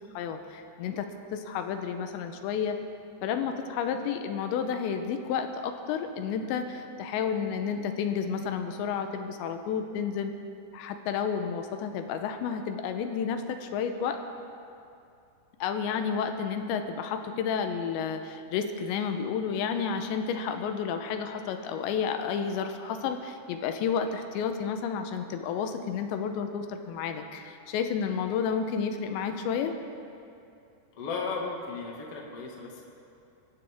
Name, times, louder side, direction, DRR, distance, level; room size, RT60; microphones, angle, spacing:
voice 1, 0.1-2.8 3.2-10.3 10.7-14.2 15.6-29.8, left 7 dB, 85° left, 7 dB, 3.0 m, -31 dB
voice 2, 30.9-32.8, left 4 dB, 45° left, -1 dB, 2.0 m, -35 dB
25.0 x 14.0 x 3.6 m, 2.6 s
omnidirectional pair, 5.2 m